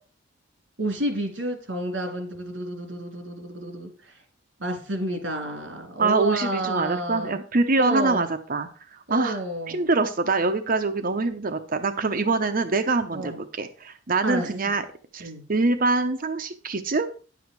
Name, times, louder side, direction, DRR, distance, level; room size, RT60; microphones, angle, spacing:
voice 1, 0.8-4.2 4.6-7.4 7.8-8.3 9.1-9.9 13.1-13.4 14.2-14.7 15.2-15.4, right 1 dB, 70° right, 4 dB, 3.2 m, -30 dB
voice 2, 6.0-8.7 8.9-9.4 9.7-14.8 15.1-17.1, right 3 dB, 50° right, 8 dB, 0.8 m, -24 dB
10.5 x 7.1 x 4.6 m, 0.37 s
head